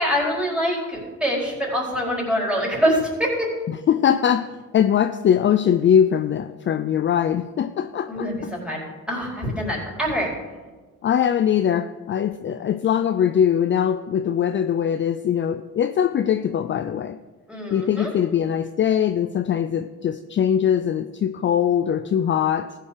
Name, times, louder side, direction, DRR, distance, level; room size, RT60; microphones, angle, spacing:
voice 1, 0.0-3.5 8.1-10.3 17.5-18.1, equal, 5° right, -4 dB, 4.5 m, -24 dB
voice 2, 3.7-8.5 11.0-17.2 17.7-22.7, left 9 dB, 40° left, 11 dB, 0.4 m, -21 dB
14.5 x 5.7 x 6.7 m, 1.3 s
cardioid pair, 90°, 30 cm